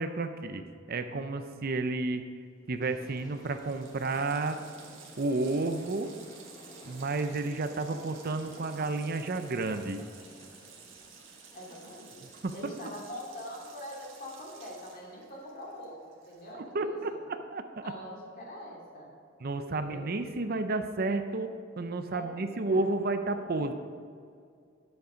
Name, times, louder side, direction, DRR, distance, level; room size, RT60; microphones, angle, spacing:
voice 1, 0.0-2.3 2.7-4.6 5.2-6.1 6.8-10.0 12.4-12.5 16.7-17.1 17.5-17.9 19.4-23.7, right 3 dB, 50° right, 8 dB, 0.6 m, -31 dB
Water tap faucet, 2.6-2.7 2.9-16.7, right 6 dB, 80° right, 1.7 m, -54 dB
Train, 2.8-12.8, equal, 20° left, 1.2 m, -53 dB
voice 2, 11.5-17.2 17.8-19.1 19.7-20.1 22.1-22.9 23.3-23.5, equal, 50° left, -3 dB, 2.8 m, -44 dB
9.6 x 7.9 x 5.0 m, 2.2 s
head